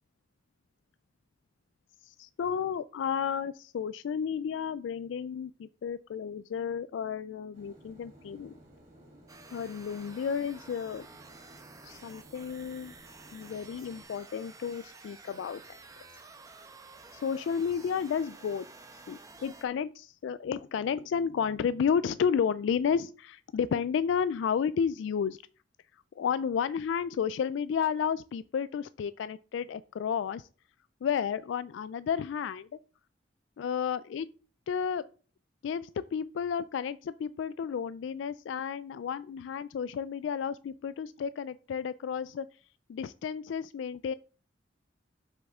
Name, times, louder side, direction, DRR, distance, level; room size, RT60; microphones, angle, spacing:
voice 1, 2.0-8.5 9.5-11.1 11.8-12.9 13.3-15.6 17.1-18.6 19.1-25.4 26.2-30.5 31.0-32.7 33.6-34.3 34.7-35.0 35.6-42.5 42.9-44.1, left 7 dB, 85° left, 0.3 m, -32 dB
sound 1, 7.5-14.0, equal, 40° right, 3.2 m, -56 dB
sound 2, 9.3-19.6, right 3 dB, 20° right, 0.8 m, -52 dB
7.8 x 6.4 x 3.6 m
head